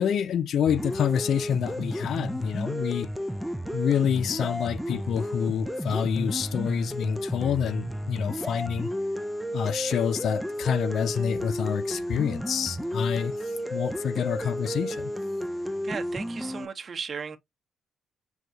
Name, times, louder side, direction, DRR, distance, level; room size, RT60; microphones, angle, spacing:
voice 1, 0.0-3.1 3.7-8.9 9.5-15.1, left 8 dB, 65° left, 0.4 m, -27 dB
sound 1, 0.7-16.7, equal, ahead, 0.4 m, -32 dB
voice 2, 15.8-17.4, right 5 dB, 45° right, 0.9 m, -35 dB
6.2 x 2.3 x 2.5 m
cardioid pair, 90°, 0 cm